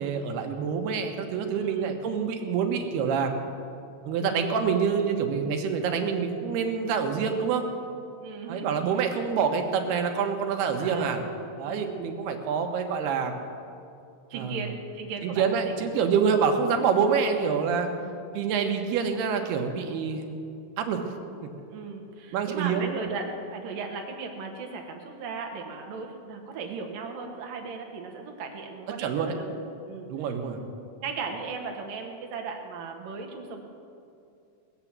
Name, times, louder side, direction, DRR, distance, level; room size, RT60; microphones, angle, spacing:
voice 1, 0.0-3.3 4.1-7.6 8.5-11.2 11.6-13.3 14.3-14.7 15.2-17.9 18.3-20.3 20.8-21.0 22.3-23.0 29.0-29.3 30.1-30.6, right 6 dB, 85° right, 4 dB, 3.2 m, -26 dB
voice 2, 1.5-1.9 4.2-4.6 8.2-9.1 10.8-11.2 11.6-12.0 14.3-16.2 18.0-18.2 21.7-29.6 29.9-33.6, right 4 dB, 65° right, 3 dB, 3.0 m, -37 dB
20.5 x 8.1 x 7.4 m, 2.5 s
omnidirectional pair, 4.4 m